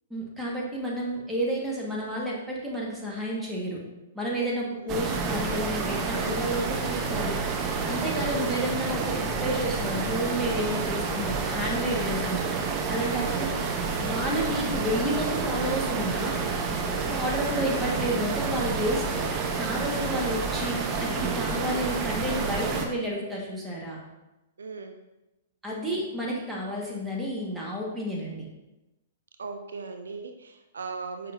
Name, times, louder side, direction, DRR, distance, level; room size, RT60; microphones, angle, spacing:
voice 1, 0.1-3.8 4.1-7.4 7.9-12.5 12.9-13.5 14.0-16.5 17.1-19.2 19.6-24.0 25.6-28.5, equal, 5° right, -4 dB, 1.6 m, -31 dB
sound 1, 4.9-22.9, right 4 dB, 30° right, 0.8 m, -29 dB
voice 2, 13.3-13.6 24.6-25.0 29.4-31.3, right 4 dB, 75° right, 7 dB, 0.5 m, -38 dB
6.6 x 5.3 x 2.7 m, 0.99 s
figure-of-eight pair, 115°, 0 cm